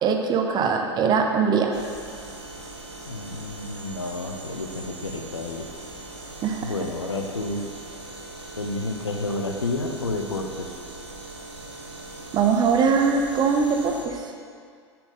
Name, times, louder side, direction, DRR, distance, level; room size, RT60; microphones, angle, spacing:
voice 1, 0.0-1.7 6.4-6.7 12.3-14.2, right 5 dB, 30° right, 3 dB, 0.7 m, -21 dB
kitchen refrigerator working, 1.7-14.1, right 2 dB, 85° right, 1.1 m, -40 dB
voice 2, 3.1-5.7 6.6-7.7 8.6-10.8, left 2 dB, 80° left, 4 dB, 0.6 m, -30 dB
9.6 x 4.3 x 3.8 m, 2.1 s
figure-of-eight pair, 85°, 14 cm